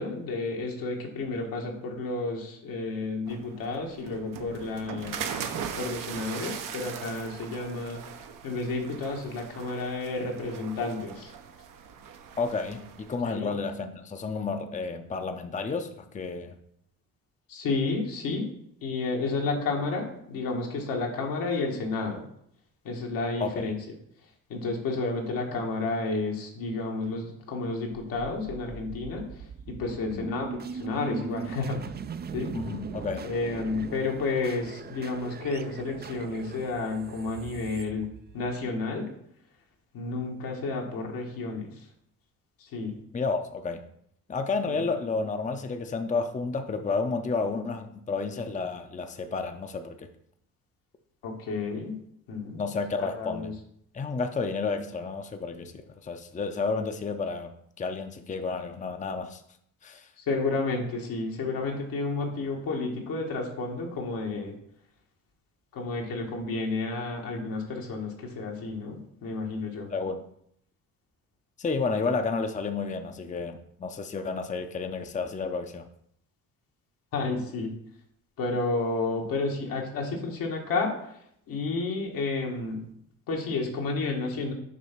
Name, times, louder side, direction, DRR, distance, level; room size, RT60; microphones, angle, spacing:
voice 1, 0.0-5.2 5.8-8.0 8.4-11.3 13.2-13.5 17.5-18.5 18.8-22.3 22.8-24.0 24.5-31.9 32.3-32.5 33.2-38.1 38.3-39.1 39.9-41.9 42.6-43.0 44.7-44.9 51.2-52.0 52.3-52.6 53.0-53.5 60.2-64.6 65.7-69.9 77.1-77.8 78.4-82.9 83.3-84.5, left 3 dB, 80° left, 0 dB, 1.6 m, -31 dB
sound 1, 3.3-13.2, right 7 dB, 65° right, 0.8 m, -40 dB
voice 2, 12.4-16.6 23.4-23.7 30.1-30.3 32.5-33.3 43.1-43.8 44.3-50.1 52.6-53.5 53.9-57.5 57.8-59.4 59.8-60.1 69.9-70.2 71.6-75.8, left 4 dB, 20° left, 7 dB, 0.6 m, -31 dB
sound 2, 28.1-38.9, right 6 dB, 30° right, 0.4 m, -40 dB
6.0 x 3.5 x 5.8 m, 0.71 s
supercardioid pair, 70°, 34 cm